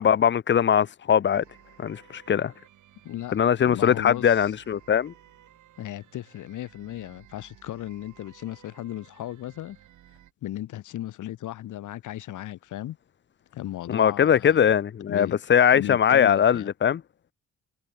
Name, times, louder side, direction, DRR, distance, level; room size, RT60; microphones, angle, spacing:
voice 1, 0.0-1.4 1.8-2.5 3.3-5.1 13.9-17.0, left 8 dB, 40° left, 0.7 m, -21 dB
sound 1, 1.3-10.3, right 12 dB, 75° right, 4.8 m, -56 dB
voice 2, 3.0-3.4 3.7-4.4 5.8-9.8 10.4-13.0 13.5-14.6 15.1-15.4 15.7-16.7, left 13 dB, 80° left, 4.4 m, -36 dB
cardioid pair, 90°, 30 cm